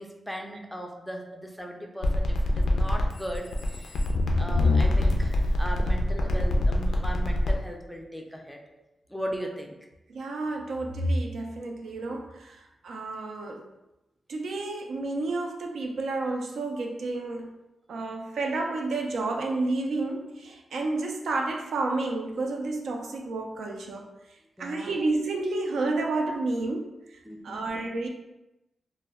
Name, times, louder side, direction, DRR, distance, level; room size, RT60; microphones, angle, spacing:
voice 1, 0.0-4.0 4.4-8.6 9.1-9.8 24.6-24.9 27.2-27.6, equal, 5° left, 1 dB, 0.3 m, -38 dB
sound 1, 2.0-7.5, left 1 dB, 85° left, 0.3 m, -24 dB
voice 2, 10.1-13.6 14.3-17.5 17.9-24.1 24.6-28.1, right 2 dB, 85° right, 2 dB, 0.3 m, -30 dB
2.1 x 2.0 x 3.4 m, 0.94 s
wide cardioid pair, 100°, 0 cm